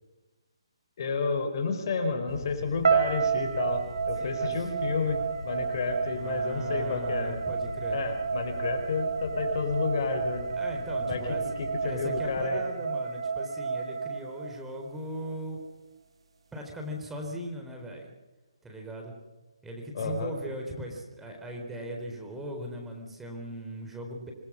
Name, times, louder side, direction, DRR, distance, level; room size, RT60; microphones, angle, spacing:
voice 1, 1.0-7.4 7.9-10.4 11.1-12.6 19.9-20.3, left 4 dB, 50° left, 6 dB, 4.6 m, -31 dB
sound 1, 2.3-12.4, left 2 dB, 85° left, 4.8 m, -43 dB
sound 2, 2.8-15.0, right 6 dB, 70° right, 2.0 m, -31 dB
voice 2, 4.2-4.7 6.1-8.0 10.5-11.5 11.8-15.6 16.5-18.1 18.6-19.1 19.6-24.3, equal, 5° right, 1 dB, 4.0 m, -39 dB
27.5 x 20.5 x 6.3 m, 1.2 s
figure-of-eight pair, 150°, 3 cm